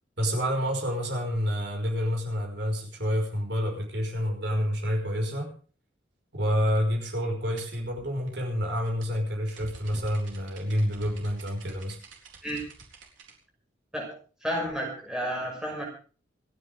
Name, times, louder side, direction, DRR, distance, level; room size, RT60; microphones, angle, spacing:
voice 1, 0.2-5.5 6.3-12.0, equal, 60° right, 1 dB, 5.4 m, -28 dB
sound 1, 7.6-13.3, right 2 dB, 80° right, 4.0 m, -48 dB
voice 2, 14.4-15.8, equal, 5° right, -2 dB, 6.1 m, -31 dB
28.0 x 9.9 x 3.6 m, 0.39 s
head